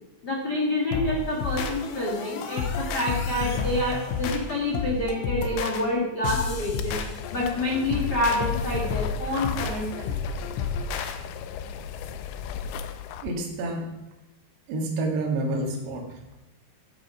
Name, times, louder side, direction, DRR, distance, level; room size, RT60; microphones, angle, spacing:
voice 1, 0.2-7.0 7.3-10.3, left 1 dB, 50° left, -3 dB, 1.2 m, -28 dB
sound 1, 0.9-11.2, left 5 dB, 75° left, 3.1 m, -31 dB
sound 2, 6.7-13.3, left 8 dB, 90° left, 2.3 m, -37 dB
voice 2, 13.2-13.9 14.7-16.4, right 2 dB, 65° right, 1 dB, 4.1 m, -29 dB
14.0 x 8.2 x 5.8 m, 0.94 s
omnidirectional pair, 5.4 m